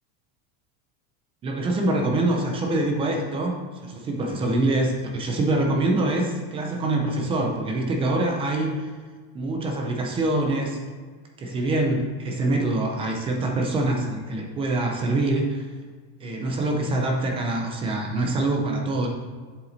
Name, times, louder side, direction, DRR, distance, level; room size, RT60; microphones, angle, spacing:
voice 1, 1.4-3.6 3.8-8.9 9.3-10.8 11.4-15.6 16.2-19.1, right 2 dB, 15° right, 2 dB, 0.3 m, -25 dB
7.9 x 7.2 x 3.9 m, 1.5 s
supercardioid pair, 160°, 50 cm